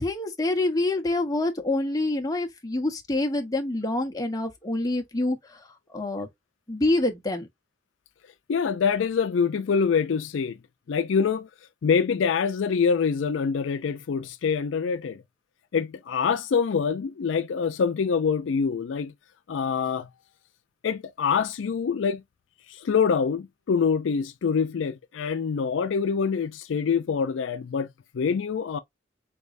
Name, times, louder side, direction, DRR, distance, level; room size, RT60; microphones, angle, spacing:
voice 1, 0.0-6.3 6.7-7.5, left 2 dB, 20° left, 0.8 m, -26 dB
voice 2, 8.5-10.6 10.9-11.5 11.8-15.2 15.7-19.1 19.5-20.1 20.8-22.2 22.7-27.9 28.1-28.8, left 6 dB, 75° left, 0.4 m, -25 dB
4.0 x 3.3 x 2.5 m
head